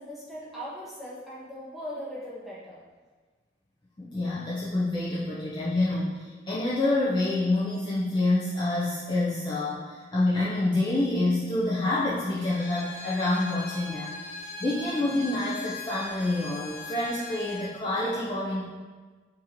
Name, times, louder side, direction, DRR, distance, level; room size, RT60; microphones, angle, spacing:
voice 1, 0.0-2.8, equal, ahead, -9 dB, 1.0 m, -39 dB
voice 2, 4.0-18.7, left 2 dB, 25° left, -7 dB, 0.4 m, -27 dB
Bowed string instrument, 12.4-17.7, left 3 dB, 50° left, 0.9 m, -40 dB
4.8 x 2.7 x 2.9 m, 1.4 s
head